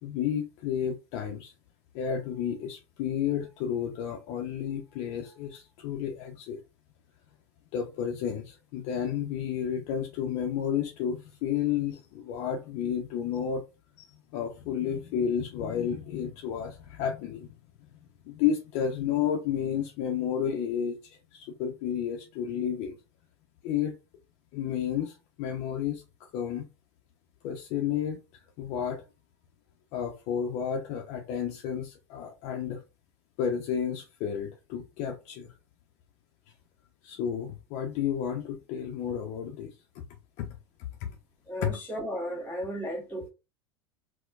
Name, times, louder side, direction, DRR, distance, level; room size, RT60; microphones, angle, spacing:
voice 1, 0.0-1.5 1.9-6.6 7.7-13.6 14.0-17.5 17.9-18.0 18.2-23.0 23.6-23.9 24.5-26.0 26.3-26.7 27.4-28.2 28.6-29.0 29.9-32.8 33.4-35.5 37.0-40.0 40.4-40.5 41.6-41.8, left 8 dB, 50° left, 0.6 m, -31 dB
voice 2, 41.5-43.3, equal, 10° left, 1.5 m, -34 dB
4.2 x 2.1 x 2.4 m
hypercardioid pair, 90°, 15 cm